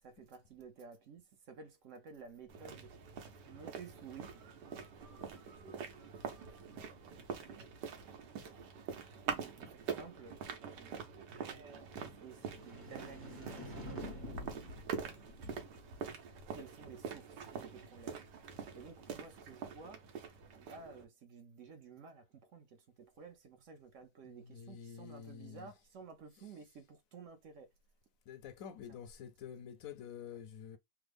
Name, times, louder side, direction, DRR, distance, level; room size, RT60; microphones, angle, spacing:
voice 1, 0.0-2.9 3.5-4.4 9.2-11.1 12.0-14.3 16.5-18.2 18.7-20.1 20.5-27.7 28.9-29.0, right 5 dB, 60° right, 0.9 m, -53 dB
sound 1, 2.5-21.0, right 6 dB, 80° right, 1.4 m, -45 dB
sound 2, 11.9-16.2, left 1 dB, 35° right, 1.2 m, -49 dB
voice 2, 24.5-25.6 28.3-30.8, left 8 dB, 70° left, 0.8 m, -48 dB
3.5 x 2.1 x 3.3 m
omnidirectional pair, 1.9 m